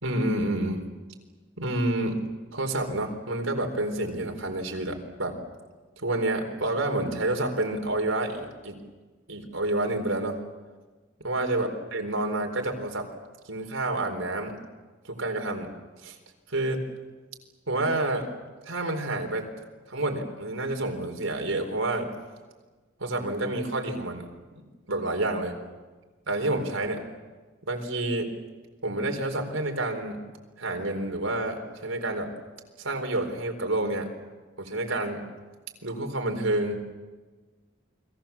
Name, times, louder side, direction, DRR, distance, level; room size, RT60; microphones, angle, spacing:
voice 1, 0.0-0.8 1.6-2.2 2.5-5.4 6.0-8.8 9.3-10.4 11.2-13.1 13.5-14.6 15.0-15.7 16.0-16.2 16.5-16.8 17.7-18.3 18.7-19.5 19.9-22.1 23.0-24.2 24.9-25.6 26.3-27.0 27.6-28.3 28.8-30.2 30.6-32.3 32.8-34.1 34.6-35.3 35.8-36.8, right 2 dB, 85° right, 4 dB, 4.2 m, -29 dB
30.0 x 22.0 x 7.3 m, 1.3 s
head